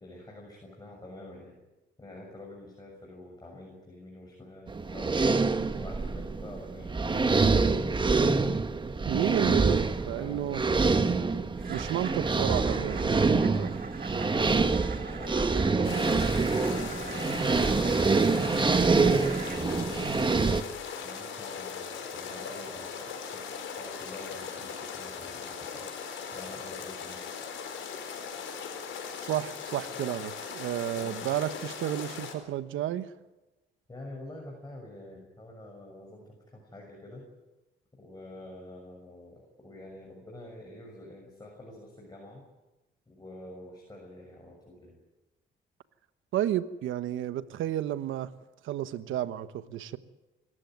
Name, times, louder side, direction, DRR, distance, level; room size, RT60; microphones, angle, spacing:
voice 1, 0.0-1.6 2.0-8.1 10.1-10.6 14.3-20.2 21.0-25.9 26.3-27.2 31.0-31.2 33.9-37.3 38.0-42.4 43.1-44.9, left 1 dB, 20° left, 0 dB, 6.7 m, -47 dB
sound 1, 4.7-20.6, right 4 dB, 25° right, 1.4 m, -26 dB
sound 2, 6.0-6.1 6.4-6.8 7.2-7.5 7.8-8.1 8.5-8.7 9.3-9.5 9.9-10.1 11.6-19.7, right 5 dB, 45° right, 2.1 m, -43 dB
voice 2, 9.0-10.6 11.7-13.7 29.2-33.1 46.3-48.3 48.6-50.0, right 12 dB, 85° right, 13 dB, 1.2 m, -32 dB
sound 3, 15.8-32.3, left 6 dB, 75° left, 4.4 m, -39 dB
25.0 x 14.5 x 9.4 m, 1.1 s
cardioid pair, 90°, 20 cm